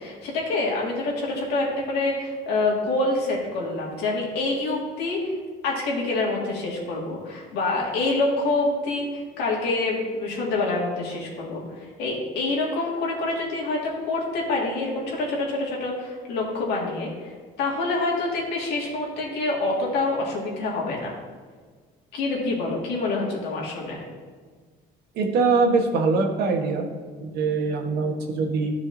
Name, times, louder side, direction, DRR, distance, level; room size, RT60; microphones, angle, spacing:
voice 1, 0.0-5.3 5.6-17.3 17.6-21.1 22.1-24.0, left 2 dB, 90° left, -3 dB, 2.0 m, -26 dB
voice 2, 25.2-26.9 27.2-28.7, right 4 dB, 75° right, 3 dB, 1.2 m, -23 dB
13.0 x 4.8 x 2.7 m, 1.6 s
cardioid pair, 110°, 17 cm